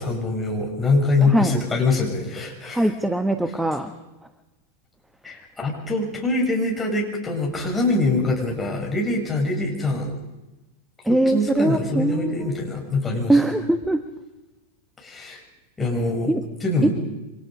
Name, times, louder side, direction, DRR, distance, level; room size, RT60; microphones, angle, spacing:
voice 1, 0.0-2.8 5.2-10.1 11.1-13.4 15.0-15.4 15.8-16.3 16.6-16.9, left 2 dB, 10° left, -1 dB, 6.8 m, -24 dB
voice 2, 1.2-1.6 2.7-3.9 11.0-12.5 13.3-14.1 16.3-16.5 16.8-16.9, right 1 dB, 5° right, 9 dB, 1.2 m, -21 dB
28.0 x 25.0 x 5.3 m, 1.0 s
figure-of-eight pair, 90°, 0 cm